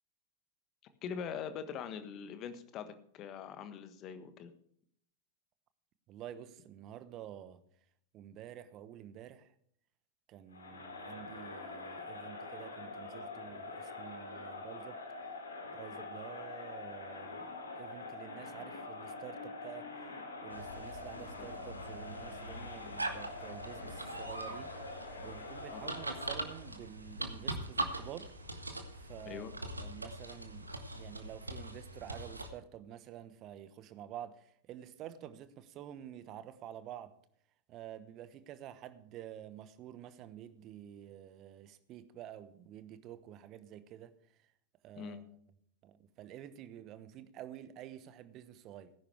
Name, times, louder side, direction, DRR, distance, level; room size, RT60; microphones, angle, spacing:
voice 1, 1.0-4.5 21.4-21.5 25.7-25.8 29.2-29.5 45.0-45.2, left 7 dB, 35° left, 1.4 m, -42 dB
voice 2, 6.1-7.6 8.1-9.5 10.3-15.0 15.7-19.9 20.4-24.8 25.2-28.3 28.9-37.2 37.7-44.1 44.8-45.2 45.8-48.9, right 11 dB, 35° right, 1.1 m, -49 dB
Crowd, 10.5-26.7, left 3 dB, 70° left, 2.8 m, -45 dB
sound 1, 20.5-32.5, right 2 dB, 80° right, 1.5 m, -42 dB
17.5 x 10.5 x 3.4 m
figure-of-eight pair, 90°, 0 cm